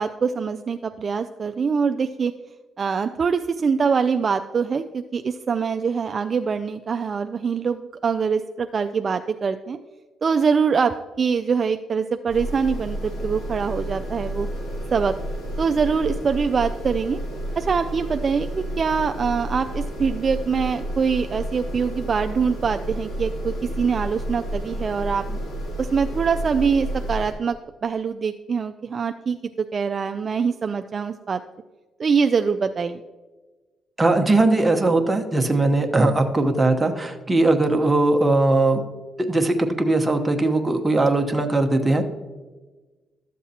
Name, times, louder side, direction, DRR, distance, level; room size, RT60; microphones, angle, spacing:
voice 1, 0.0-2.3 2.8-9.8 10.2-14.5 14.9-15.1 15.6-17.2 17.6-25.4 25.8-27.6 27.8-31.4 32.0-33.0, right 5 dB, 45° right, 8 dB, 0.3 m, -24 dB
sound 1, 12.3-27.3, right 1 dB, 90° left, 2.2 m, -31 dB
voice 2, 34.0-38.8 39.2-42.0, right 2 dB, 15° right, 4 dB, 1.0 m, -19 dB
12.5 x 7.3 x 2.8 m, 1.3 s
cardioid pair, 90°, 0 cm